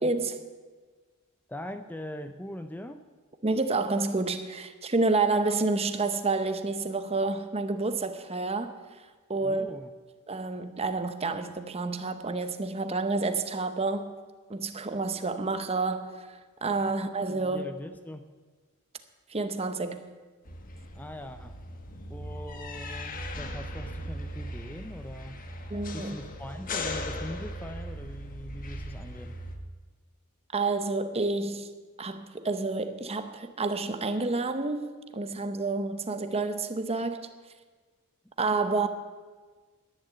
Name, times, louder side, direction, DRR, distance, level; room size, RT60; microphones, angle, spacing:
voice 1, 0.0-0.4 3.4-9.7 10.3-14.1 14.5-17.7 19.3-20.1 25.7-26.2 30.5-31.7 32.0-37.3 38.4-38.9, right 3 dB, 25° right, 0.8 m, -29 dB
voice 2, 1.5-3.0 9.4-9.9 16.8-16.9 17.3-18.3 20.9-21.6 22.1-25.4 25.9-29.4, left 1 dB, 10° left, 0.5 m, -41 dB
sound 1, 20.5-29.6, left 1 dB, 40° left, 1.2 m, -38 dB
11.0 x 11.0 x 8.7 m
head